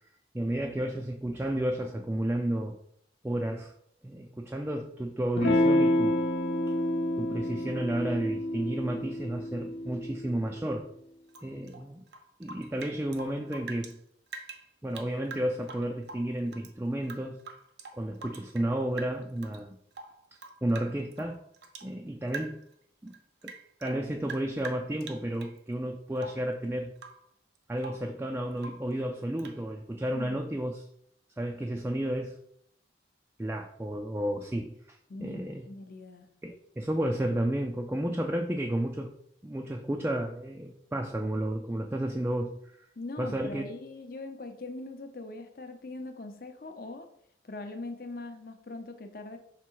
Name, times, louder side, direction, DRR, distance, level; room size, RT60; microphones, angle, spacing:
voice 1, 0.3-2.8 3.2-3.7 4.0-6.2 6.7-6.8 7.2-10.9 11.4-12.0 12.4-14.0 14.8-17.4 18.0-19.8 20.6-21.4 21.8-22.6 23.0-23.1 23.4-23.5 23.8-26.9 27.7-30.9 31.4-32.4 33.4-35.7 36.4-39.1 39.4-42.9 43.2-43.6, right 1 dB, 10° right, 2 dB, 0.3 m, -32 dB
Electric guitar / Strum, 5.4-10.5, left 1 dB, 80° left, 0.8 m, -28 dB
Rain / Drip, 11.3-14.0 14.3-16.7 17.0-18.7 19.0-19.6 19.9-21.9 22.3-22.7 23.1-25.6 26.2-26.5 27.0-27.3 27.6-28.1 28.6-28.9 29.4-29.6, right 4 dB, 70° right, 0.7 m, -45 dB
voice 2, 35.1-36.3 43.0-47.1 47.4-49.4, left 2 dB, 50° left, 7 dB, 0.7 m, -41 dB
5.9 x 3.4 x 4.6 m, 0.69 s
head